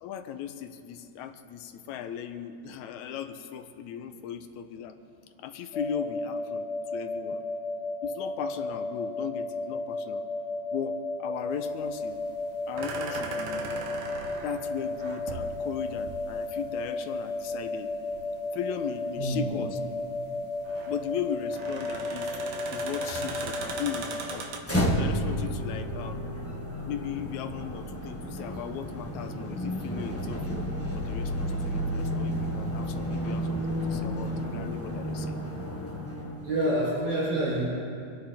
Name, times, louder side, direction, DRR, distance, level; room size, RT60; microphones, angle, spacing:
voice 1, 0.0-5.0 5.4-6.7 6.9-7.4 8.0-10.2 10.7-12.2 12.7-13.9 14.4-17.9 18.5-19.8 20.9-22.3 22.7-24.5 25.0-26.2 26.8-35.4, left 8 dB, 80° left, 8 dB, 2.1 m, -37 dB
sound 1, 5.7-24.4, left 2 dB, 50° left, 3.0 m, -34 dB
sound 2, 11.5-24.6, right 4 dB, 65° right, 2.2 m, -40 dB
voice 2, 19.2-19.5 23.1-23.3 36.4-37.6, right 1 dB, 80° right, -10 dB, 6.3 m, -27 dB
sound 3, 24.6-36.6, equal, 20° left, 0.4 m, -31 dB
25.5 x 10.5 x 4.3 m, 2.4 s
omnidirectional pair, 3.4 m